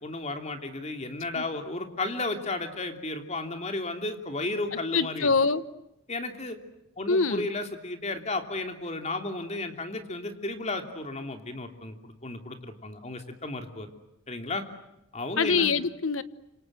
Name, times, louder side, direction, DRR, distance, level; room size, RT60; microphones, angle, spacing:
voice 1, 0.0-5.3 6.1-6.6 7.0-13.9 14.3-14.6 15.1-15.8, left 2 dB, 35° left, 6 dB, 3.0 m, -33 dB
voice 2, 4.9-5.6 7.1-7.5 15.4-16.2, left 4 dB, 80° left, 14 dB, 1.2 m, -24 dB
28.5 x 26.5 x 7.9 m, 0.87 s
head